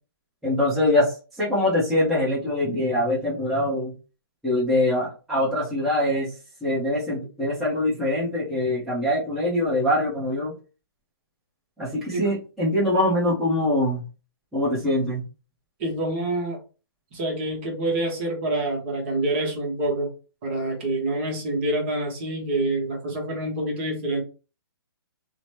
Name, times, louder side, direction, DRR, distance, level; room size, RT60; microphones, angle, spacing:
voice 1, 0.4-3.9 4.4-6.3 6.6-10.5 11.8-14.0 14.5-15.2, left 1 dB, ahead, -11 dB, 0.8 m, -23 dB
voice 2, 15.8-16.6 17.1-20.1 20.4-24.2, right 1 dB, 30° right, -1 dB, 0.9 m, -26 dB
2.9 x 2.1 x 3.2 m, 0.34 s
hypercardioid pair, 160°, 13 cm